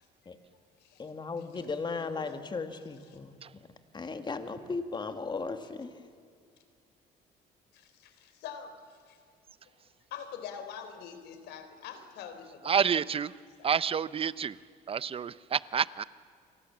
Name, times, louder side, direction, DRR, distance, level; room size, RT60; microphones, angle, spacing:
voice 1, 1.0-3.7 3.9-5.9, left 4 dB, 25° left, 8 dB, 2.2 m, -36 dB
voice 2, 1.8-2.5 7.7-9.2 9.6-9.8 10.1-13.0 13.6-13.7, left 7 dB, 80° left, 8 dB, 3.7 m, -45 dB
voice 3, 12.6-13.3 13.6-14.6 14.9-16.0, right 7 dB, 35° right, 18 dB, 0.7 m, -29 dB
29.5 x 24.0 x 7.3 m, 2.2 s
cardioid pair, 110°, 17 cm